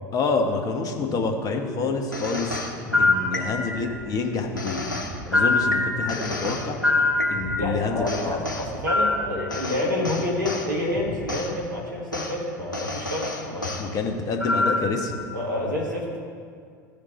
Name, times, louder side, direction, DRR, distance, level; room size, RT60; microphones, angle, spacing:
voice 1, 0.1-2.6 3.0-4.9 5.3-6.8 7.3-8.4 13.8-15.1, left 4 dB, 35° left, 3 dB, 1.2 m, -27 dB
sound 1, 1.7-12.2, equal, 5° right, 1.9 m, -40 dB
sound 2, 2.1-3.9 4.6-7.7 8.1-10.7 11.3-11.5 12.1-12.3 12.7-13.8 14.4-15.0, left 2 dB, 90° left, 0.9 m, -25 dB
voice 2, 7.6-13.8 15.3-16.3, left 1 dB, 80° right, -3 dB, 1.6 m, -28 dB
14.0 x 5.1 x 4.3 m, 2.2 s
figure-of-eight pair, 75°, 10 cm